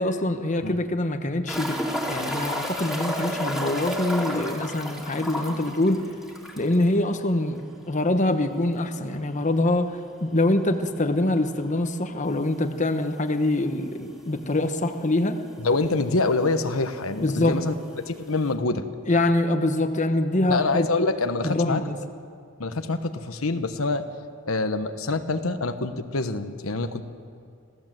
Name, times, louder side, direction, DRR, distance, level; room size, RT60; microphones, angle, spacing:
voice 1, 0.0-1.8 2.0-6.1 6.6-9.9 10.2-15.4 17.2-17.6 19.1-21.1 21.4-22.0, left 1 dB, 35° left, 7 dB, 1.1 m, -24 dB
sound 1, 1.5-6.8 7.1-7.2 7.6-7.7 10.5-10.6 12.2-12.3 13.1-13.2 13.4-13.5 14.4-14.5 14.7-15.3 16.3-16.4, equal, ahead, 2.8 m, -31 dB
voice 2, 15.6-17.7 18.1-18.8 20.5-21.8 22.6-24.0 24.5-27.0, left 3 dB, 85° left, 8 dB, 1.2 m, -25 dB
27.0 x 16.0 x 7.7 m, 2.3 s
head